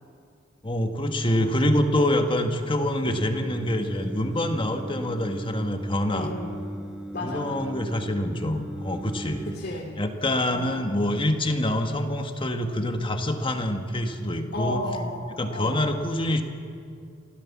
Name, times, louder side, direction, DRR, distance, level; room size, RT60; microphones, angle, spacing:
voice 1, 0.6-6.3 7.2-9.5 10.0-14.8 15.4-16.4, left 1 dB, 30° left, 5 dB, 1.6 m, -26 dB
Singing, 3.0-9.6, equal, 5° right, 0.8 m, -38 dB
voice 2, 6.1-6.8 7.1-7.8 9.4-10.0 10.5-10.8 14.5-15.9, left 1 dB, 55° left, -2 dB, 2.6 m, -34 dB
26.5 x 16.5 x 7.4 m, 2.4 s
head